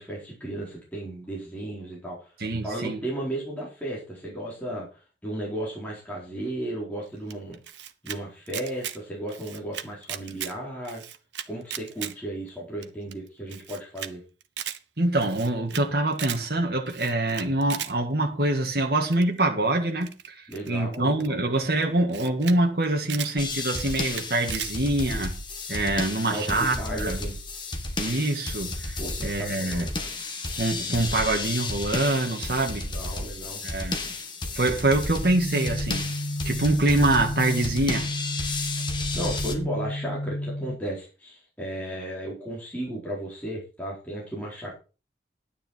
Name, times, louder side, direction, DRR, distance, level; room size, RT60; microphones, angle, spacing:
voice 1, 0.0-2.3 2.6-4.9 5.2-7.6 8.0-11.0 11.5-14.2 20.5-21.4 26.2-27.4 29.0-30.1 32.9-33.6 39.1-44.7, right 1 dB, 10° left, 4.5 m, -34 dB
voice 2, 2.4-3.0 15.0-25.3 25.7-27.2 28.0-29.9 30.6-32.9 33.6-34.2 34.5-36.1 36.4-38.1 38.3-38.4, right 2 dB, 55° right, 1.9 m, -25 dB
Camera, 7.3-8.2 8.5-9.0 9.3-10.5 10.8-12.1 12.5-12.6 12.8-12.9 13.1-13.2 13.5-14.1 14.4-14.8 15.2-15.8 16.1-16.4 16.9-17.9 19.1-19.4 20.0-21.3 21.8-21.9 22.1-22.6 22.8-23.3 23.7-24.7, right 10 dB, 85° right, 1.0 m, -36 dB
sound 1, 23.4-39.6, left 2 dB, 25° left, 1.6 m, -33 dB
sound 2, 35.2-40.8, left 1 dB, 70° left, 1.0 m, -32 dB
10.5 x 9.6 x 4.5 m
head